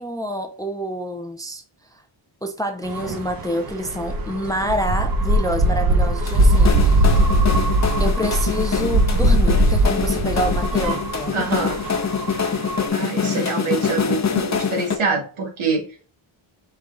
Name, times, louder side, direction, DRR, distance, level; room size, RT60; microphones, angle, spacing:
voice 1, 0.0-1.6 1.9-2.0 2.4-7.3 8.0-11.5, equal, 10° left, 0.5 m, -27 dB
sound 1, 2.8-12.9, right 1 dB, 45° right, 1.0 m, -20 dB
sound 2, 6.3-15.0, left 6 dB, 35° left, 0.8 m, -25 dB
voice 2, 11.3-11.8 12.9-15.8, right 4 dB, 75° right, 1.7 m, -25 dB
5.4 x 2.4 x 3.8 m
cardioid pair, 95°, 49 cm